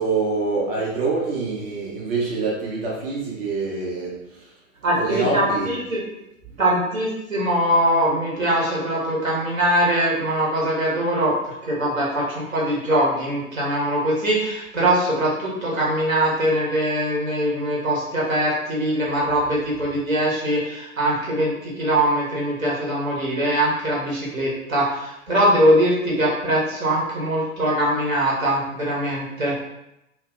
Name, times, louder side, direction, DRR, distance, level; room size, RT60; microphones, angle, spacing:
voice 1, 0.0-4.5 5.0-5.7, right 3 dB, 45° right, -4 dB, 0.7 m, -25 dB
voice 2, 4.8-6.1 6.6-11.3 11.7-29.5, right 1 dB, 75° right, -5 dB, 1.0 m, -22 dB
2.5 x 2.2 x 2.4 m, 0.86 s
figure-of-eight pair, 105°, 40 cm